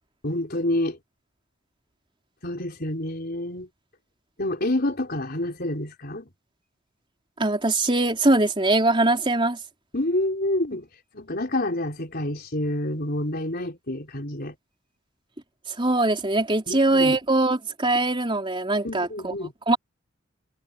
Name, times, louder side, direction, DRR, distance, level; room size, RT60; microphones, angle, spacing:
voice 1, 0.2-1.0 2.4-3.7 4.4-6.3 9.9-10.9 11.1-14.5 16.7-17.2 18.8-19.5, left 1 dB, 50° left, 4.4 m, -28 dB
voice 2, 7.4-9.6 15.8-19.3 19.7-19.8, right 2 dB, 25° right, 4.2 m, -22 dB
head